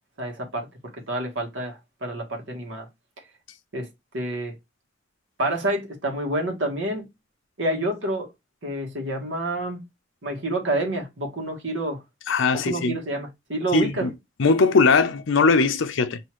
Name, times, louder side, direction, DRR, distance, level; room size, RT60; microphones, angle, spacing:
voice 1, 0.2-0.7 1.1-2.9 3.7-3.9 4.1-4.5 5.4-7.1 7.6-8.3 8.6-9.8 10.2-12.0 12.6-14.1, right 1 dB, 75° right, 1.3 m, -28 dB
voice 2, 12.3-13.0 13.7-14.1 14.4-16.2, left 4 dB, 75° left, 0.5 m, -20 dB
5.8 x 2.7 x 3.1 m
head